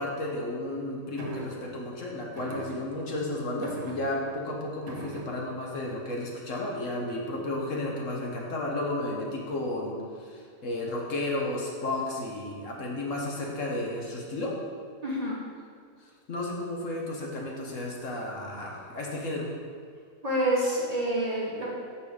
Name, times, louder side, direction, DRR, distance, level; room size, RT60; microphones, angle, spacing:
voice 1, 0.0-14.5 16.3-19.5, left 1 dB, 65° left, -2 dB, 1.5 m, -33 dB
sound 1, 1.2-1.8 2.4-3.2 3.6-4.4 4.9-5.6 6.6-6.9, equal, 65° right, 1.3 m, -41 dB
voice 2, 15.0-15.3 20.2-21.7, right 1 dB, 30° right, -5 dB, 1.3 m, -27 dB
6.8 x 5.3 x 4.9 m, 2.2 s
omnidirectional pair, 1.5 m